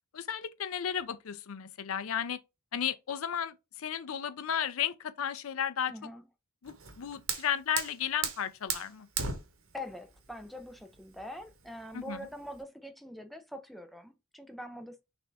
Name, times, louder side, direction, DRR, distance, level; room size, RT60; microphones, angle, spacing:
voice 1, 0.1-2.4 2.7-6.1 6.6-9.1 11.9-12.3, left 8 dB, 75° left, 0.5 m, -34 dB
voice 2, 5.9-6.2 9.7-15.0, left 1 dB, ahead, 0.4 m, -44 dB
Fire, 6.7-12.6, right 6 dB, 70° right, 1.0 m, -39 dB
6.1 x 2.6 x 3.4 m
head